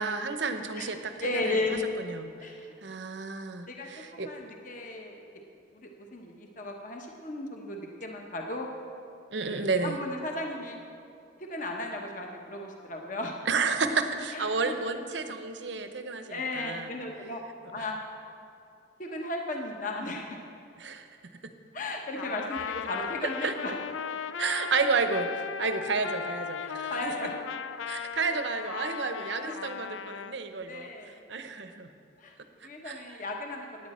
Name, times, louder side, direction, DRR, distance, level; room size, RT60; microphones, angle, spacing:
voice 1, 0.0-2.5 2.8-4.3 9.3-10.0 13.5-16.9 17.8-17.9 20.8-21.1 21.4-21.5 23.2-23.5 24.4-27.1 27.9-31.9 32.6-33.2, right 4 dB, 70° right, 8 dB, 0.8 m, -31 dB
voice 2, 1.2-1.8 2.4-2.7 3.7-5.2 5.7-8.7 9.4-10.8 11.4-13.4 14.3-14.7 16.3-17.4 17.7-18.0 19.0-20.4 21.7-23.7 26.6-27.4 29.4-29.5 30.7-31.2 32.2-32.4 32.6-33.7, left 2 dB, 45° left, 1 dB, 1.0 m, -35 dB
Trumpet, 22.2-30.4, left 7 dB, 90° left, 0.4 m, -37 dB
16.5 x 9.9 x 4.3 m, 2.5 s
head